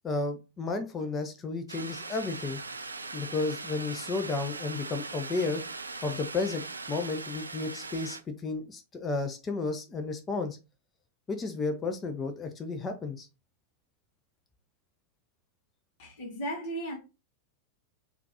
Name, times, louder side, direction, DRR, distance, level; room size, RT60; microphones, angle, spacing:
voice 1, 0.0-2.6 3.1-5.6 6.0-10.6 11.3-13.3, left 3 dB, 20° left, 0.5 m, -32 dB
sound 1, 1.7-8.2, right 3 dB, 80° right, 0.3 m, -40 dB
voice 2, 16.0-17.0, right 1 dB, 50° left, 1.1 m, -35 dB
3.6 x 2.4 x 2.9 m
figure-of-eight pair, 90°, 0 cm